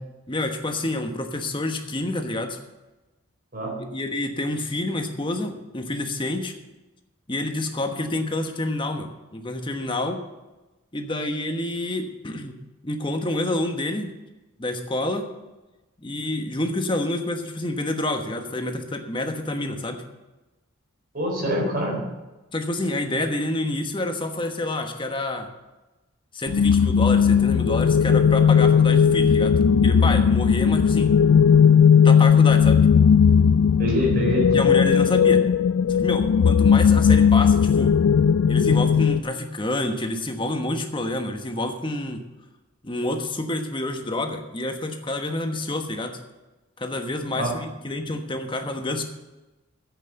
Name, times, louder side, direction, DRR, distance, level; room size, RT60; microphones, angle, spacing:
voice 1, 0.3-2.6 3.9-6.5 7.3-10.2 10.9-12.5 12.8-14.1 14.6-15.3 16.0-20.0 22.5-25.5 26.3-29.5 29.8-31.1 32.0-32.8 34.5-35.4 35.9-37.9 38.5-42.2 42.8-46.2 46.8-49.0, left 1 dB, 25° left, 5 dB, 1.2 m, -28 dB
voice 2, 3.5-3.8 21.1-22.1 33.8-34.6 47.3-47.5, equal, 45° right, -1 dB, 4.2 m, -25 dB
sound 1, 26.5-39.2, left 7 dB, 75° left, 0.4 m, -17 dB
10.5 x 8.3 x 7.8 m, 1.1 s
head